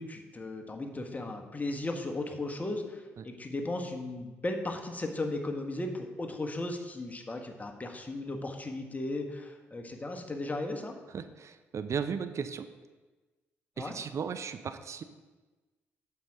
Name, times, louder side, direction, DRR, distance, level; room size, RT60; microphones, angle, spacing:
voice 1, 0.0-10.9 13.8-13.9, left 2 dB, 25° left, 3 dB, 1.5 m, -36 dB
voice 2, 11.1-12.7 13.8-15.0, right 6 dB, 50° right, 10 dB, 0.5 m, -36 dB
9.2 x 7.8 x 3.7 m, 1.2 s
hypercardioid pair, 45°, 6 cm